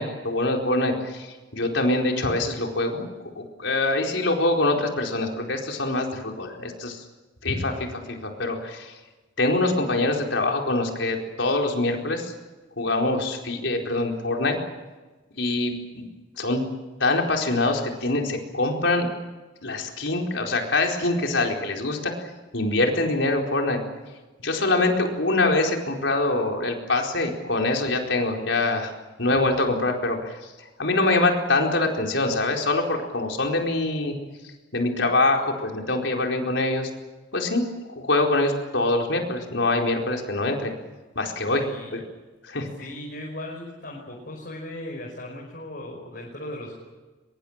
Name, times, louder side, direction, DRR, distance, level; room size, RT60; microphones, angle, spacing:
voice 1, 0.0-3.0 3.4-7.0 7.4-8.9 9.4-12.3 12.8-14.6 15.4-16.1 16.4-16.6 17.0-19.1 19.6-22.1 22.5-23.8 24.4-28.9 29.2-30.5 30.8-34.1 34.7-36.9 37.3-40.7 41.1-41.6 41.9-42.0 42.4-42.7, left 2 dB, 75° left, 1 dB, 4.5 m, -24 dB
voice 2, 41.5-41.9 42.8-46.8, left 1 dB, 55° left, -1 dB, 5.6 m, -37 dB
24.5 x 22.5 x 7.4 m, 1.2 s
head